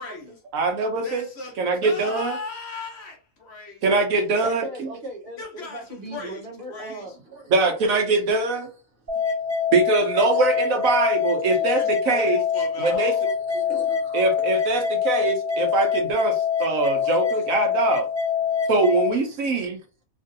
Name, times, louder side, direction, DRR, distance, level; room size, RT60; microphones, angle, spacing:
voice 1, 0.0-0.4 1.0-4.1 5.4-7.2 11.7-13.2, left 3 dB, 55° left, 1.1 m, -37 dB
voice 2, 0.5-1.2 1.6-2.4 3.8-4.7 7.5-8.7 9.7-12.4 12.8-13.1 14.1-18.1 18.7-19.8, right 3 dB, 90° right, 1.3 m, -22 dB
voice 3, 4.4-7.5 9.4-9.5 10.3-10.5 11.5-11.8 12.5-12.6 13.3-14.3 16.6-17.5 18.4-18.7 19.2-19.4, right 2 dB, 50° right, 1.2 m, -40 dB
sound 1, 9.1-19.1, left 7 dB, 10° right, 1.1 m, -24 dB
3.1 x 2.7 x 2.6 m
omnidirectional pair, 1.4 m